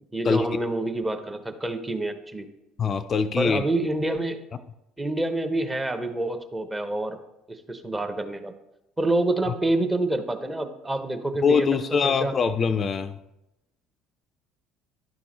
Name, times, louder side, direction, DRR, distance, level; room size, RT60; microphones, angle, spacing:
voice 1, 0.1-2.5 3.4-4.4 5.0-7.2 7.5-8.5 9.0-12.3, right 2 dB, 15° right, 6 dB, 0.9 m, -27 dB
voice 2, 2.8-3.6 11.4-13.2, left 5 dB, 35° left, 10 dB, 0.4 m, -23 dB
11.0 x 5.9 x 3.2 m, 0.90 s
figure-of-eight pair, 55°, 0 cm